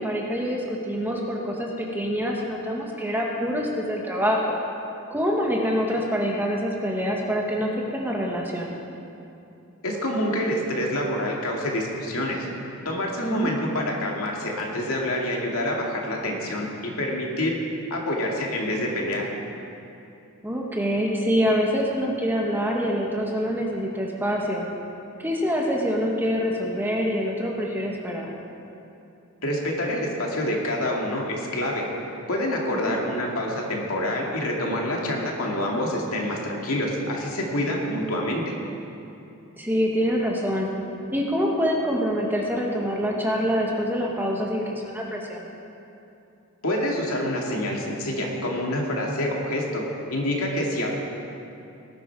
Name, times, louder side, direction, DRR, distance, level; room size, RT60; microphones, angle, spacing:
voice 1, 0.0-4.6 5.1-8.7 13.2-13.6 20.4-24.6 25.2-28.3 32.7-33.0 39.6-40.7 41.1-45.4, equal, 10° right, -2 dB, 1.5 m, -25 dB
voice 2, 9.8-12.5 12.8-17.5 17.9-19.3 29.4-31.9 32.3-38.4 46.6-49.8 50.1-50.9, left 1 dB, 75° left, -1 dB, 2.4 m, -27 dB
19.0 x 11.5 x 4.7 m, 2.8 s
head